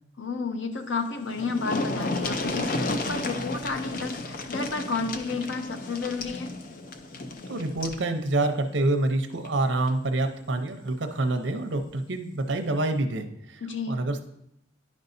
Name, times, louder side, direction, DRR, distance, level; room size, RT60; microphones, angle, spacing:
voice 1, 0.2-6.5 13.6-14.0, left 4 dB, 85° left, 7 dB, 0.7 m, -31 dB
sound 1, 0.9-1.0 1.2-8.0 9.3-9.5 9.9-10.0, left 2 dB, 45° left, 0.5 m, -32 dB
voice 2, 7.5-14.2, right 2 dB, 75° right, 6 dB, 0.7 m, -27 dB
10.5 x 5.4 x 2.6 m, 0.76 s
head